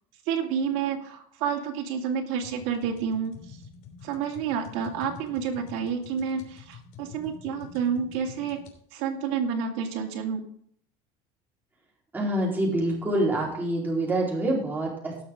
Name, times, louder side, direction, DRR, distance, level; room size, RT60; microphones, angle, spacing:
voice 1, 0.3-3.4 4.0-8.6 8.9-10.4, right 7 dB, 75° right, 1 dB, 2.5 m, -29 dB
sound 1, 2.4-8.8, left 6 dB, 70° left, 3.2 m, -47 dB
voice 2, 12.1-15.2, right 1 dB, 10° right, -4 dB, 4.4 m, -26 dB
18.0 x 6.8 x 3.8 m, 0.64 s
cardioid pair, 130°, 15 cm